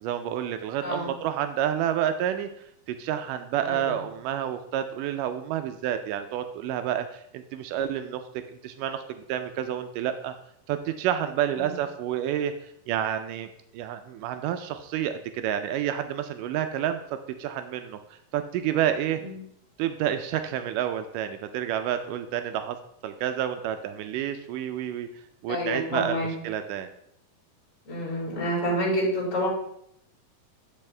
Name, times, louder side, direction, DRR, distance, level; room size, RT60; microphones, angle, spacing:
voice 1, 0.0-2.5 2.9-8.2 8.5-10.3 10.7-17.0 17.4-19.2 19.8-22.8 23.0-25.1 25.4-26.9, right 10 dB, 85° right, 8 dB, 1.9 m, -29 dB
voice 2, 3.6-3.9 11.6-11.7 19.2-19.4 25.5-26.3 27.8-29.5, equal, 25° left, -5 dB, 2.9 m, -28 dB
10.5 x 5.4 x 3.3 m, 0.73 s
omnidirectional pair, 4.2 m